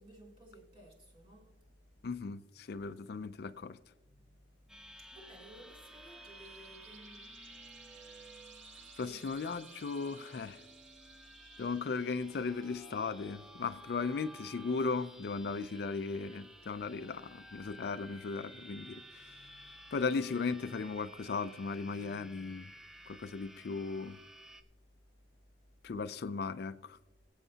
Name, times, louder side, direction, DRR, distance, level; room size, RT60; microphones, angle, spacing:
voice 1, 0.0-2.1 2.7-2.8 4.0-9.2 11.1-11.6 19.7-19.9 24.8-25.8, right 1 dB, 30° right, 2.9 m, -58 dB
voice 2, 2.0-3.8 9.0-10.7 11.6-19.6 19.9-22.7 23.1-24.2 25.8-27.0, left 4 dB, 60° left, 0.4 m, -37 dB
sound 1, 4.7-24.6, right 1 dB, 5° right, 0.6 m, -54 dB
sound 2, 5.2-14.3, right 9 dB, 85° right, 0.7 m, -60 dB
24.0 x 8.1 x 2.8 m
head